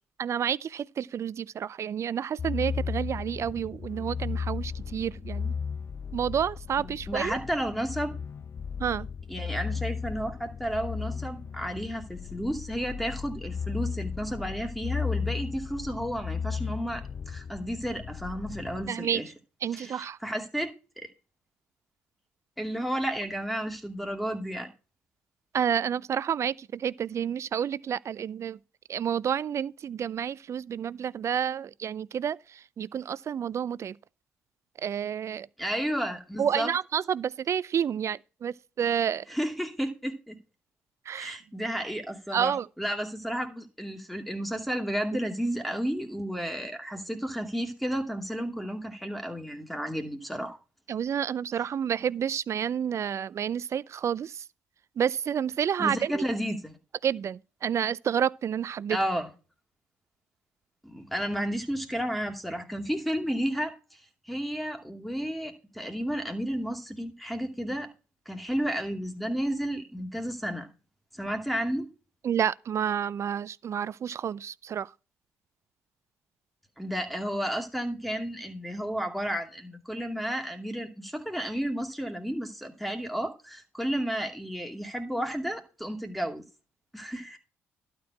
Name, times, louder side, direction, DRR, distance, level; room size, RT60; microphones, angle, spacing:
voice 1, 0.2-5.5 6.1-7.4 8.8-9.1 18.9-19.2 19.6-20.2 25.5-28.6 28.9-34.0 34.8-35.5 36.4-39.3 41.1-41.4 42.3-42.7 50.9-54.4 55.0-56.2 57.0-59.0 72.2-74.9, right 8 dB, 50° right, 0.4 m, -29 dB
sound 1, 2.4-18.9, left 6 dB, 40° left, 0.7 m, -35 dB
voice 2, 7.1-8.1 9.3-19.3 19.7-20.7 21.0-21.1 22.6-24.7 35.6-36.7 39.3-40.4 41.1-50.6 55.8-56.8 58.9-59.3 60.8-67.9 68.3-70.7 71.1-71.9 76.8-86.4 86.9-87.4, equal, ahead, 2.4 m, -32 dB
12.0 x 4.5 x 6.0 m
hypercardioid pair, 55°, 6 cm